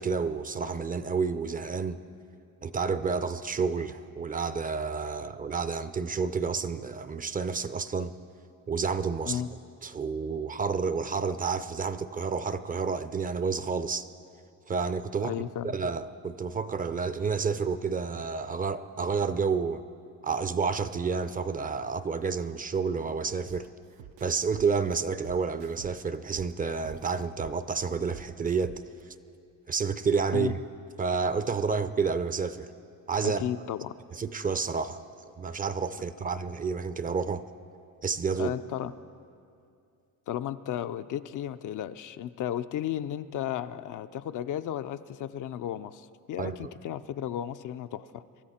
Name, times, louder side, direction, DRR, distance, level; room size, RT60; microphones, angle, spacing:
voice 1, 0.0-2.0 2.6-8.1 8.7-9.4 9.8-14.1 14.7-15.3 15.6-19.8 20.2-23.7 24.2-28.8 29.7-30.6 31.0-32.7 33.1-33.4 34.1-35.0 35.4-37.4 38.0-38.5 46.4-46.7, right 5 dB, 25° right, 13 dB, 0.5 m, -30 dB
voice 2, 15.2-15.7 30.3-30.5 33.2-33.9 38.4-38.9 40.3-48.2, left 11 dB, 60° left, 11 dB, 0.5 m, -34 dB
sound 1, 23.5-23.6 24.0-26.5 26.8-29.0, right 11 dB, 90° right, 0.6 m, -46 dB
24.0 x 13.0 x 4.3 m, 2.5 s
cardioid pair, 110°, 34 cm